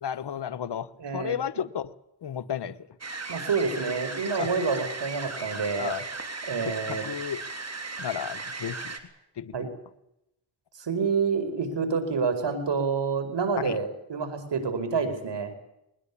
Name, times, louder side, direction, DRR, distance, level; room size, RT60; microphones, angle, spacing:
voice 1, 0.0-1.9 2.2-2.9 4.4-4.5 5.7-6.0 6.6-7.4 8.0-8.9 9.4-9.5 13.6-13.8, left 9 dB, 60° left, 13 dB, 1.3 m, -33 dB
voice 2, 1.0-1.4 3.3-5.9 6.4-7.0 9.5-9.7 10.8-15.5, right 5 dB, 60° right, 8 dB, 5.1 m, -28 dB
sound 1, 3.0-9.0, right 3 dB, 35° right, 3.4 m, -36 dB
21.0 x 20.5 x 8.5 m, 0.83 s
cardioid pair, 70°, 47 cm